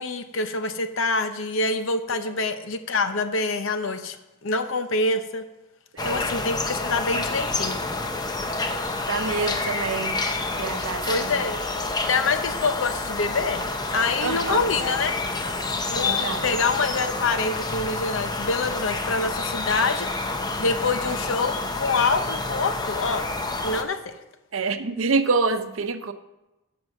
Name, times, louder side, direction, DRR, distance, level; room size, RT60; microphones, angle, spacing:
voice 1, 0.0-4.2 4.4-5.4 6.0-7.8 11.1-11.6 12.1-13.6 13.9-15.2 15.9-20.1 20.6-23.3 23.6-24.1, left 3 dB, 70° left, 9 dB, 0.7 m, -26 dB
sound 1, 6.0-23.8, left 3 dB, 20° left, 0.6 m, -28 dB
voice 2, 9.1-10.2 10.6-11.4 14.2-14.6 16.0-16.4 24.5-26.1, right 4 dB, 80° right, 9 dB, 0.7 m, -27 dB
10.5 x 6.2 x 6.0 m, 0.99 s
head